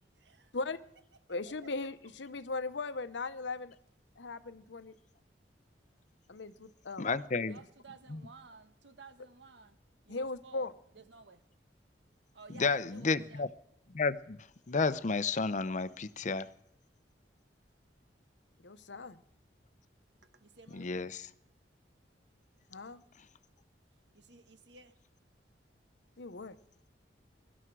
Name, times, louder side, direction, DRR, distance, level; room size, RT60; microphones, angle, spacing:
voice 1, 0.2-0.6 7.5-9.8 10.1-10.7 10.9-11.4 12.3-13.5 20.2-20.9 24.1-25.0, right 3 dB, 80° right, 1.2 m, -54 dB
voice 2, 1.3-3.8 4.2-4.9 6.3-7.1 10.1-10.7 18.6-19.2 22.7-23.0 26.2-26.6, left 3 dB, 85° left, 0.9 m, -38 dB
voice 3, 7.0-7.6 8.1-8.2 12.5-13.5 13.9-14.4 14.7-16.5 20.7-21.3, left 4 dB, 40° left, 0.6 m, -31 dB
22.5 x 12.5 x 4.7 m
head